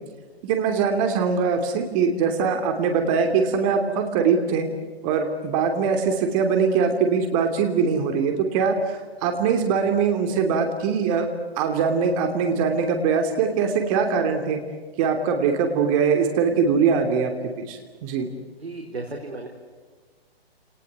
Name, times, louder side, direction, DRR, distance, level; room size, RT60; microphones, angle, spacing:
voice 1, 0.4-4.7 5.0-11.3 11.6-14.6 15.0-18.3, right 5 dB, 35° right, 6 dB, 3.0 m, -22 dB
voice 2, 18.6-19.5, right 3 dB, 85° right, 3 dB, 4.3 m, -34 dB
29.5 x 20.0 x 9.6 m, 1.5 s
hypercardioid pair, 135°, 31 cm